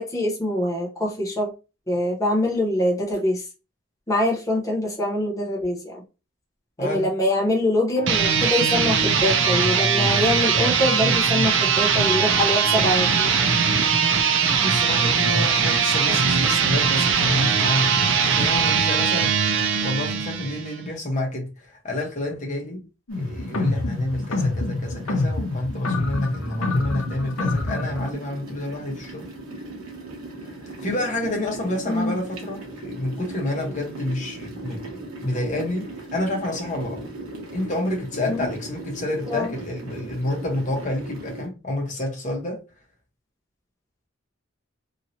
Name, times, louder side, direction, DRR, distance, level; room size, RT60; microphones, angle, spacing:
voice 1, 0.0-1.5 1.9-3.4 4.1-6.0 6.8-13.3 31.8-32.2 38.2-38.5 39.3-39.5, left 1 dB, 15° left, 0.7 m, -24 dB
voice 2, 6.8-7.1 14.6-19.3 19.8-22.8 23.2-29.3 30.6-37.0 37.5-42.6, left 1 dB, 35° left, 0.9 m, -29 dB
sound 1, 8.0-20.7, right 6 dB, 60° right, 0.6 m, -20 dB
sound 2, 23.1-28.1, left 2 dB, 80° left, 0.7 m, -26 dB
sound 3, 23.1-41.5, right 2 dB, 85° right, 1.1 m, -39 dB
2.9 x 2.8 x 2.7 m
head